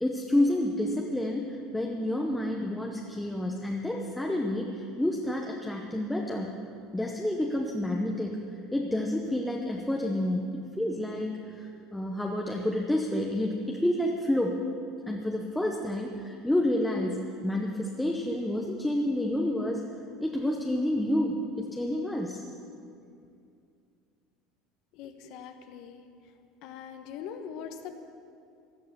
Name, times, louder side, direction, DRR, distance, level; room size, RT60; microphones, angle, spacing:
voice 1, 0.0-6.6 6.9-8.4 8.7-14.6 15.1-19.8 20.2-22.4, left 1 dB, 5° left, 0 dB, 0.9 m, -29 dB
voice 2, 25.0-26.0 26.6-27.9, left 8 dB, 60° left, 6 dB, 1.1 m, -42 dB
16.0 x 11.5 x 6.9 m, 2.4 s
cardioid pair, 155°, 0 cm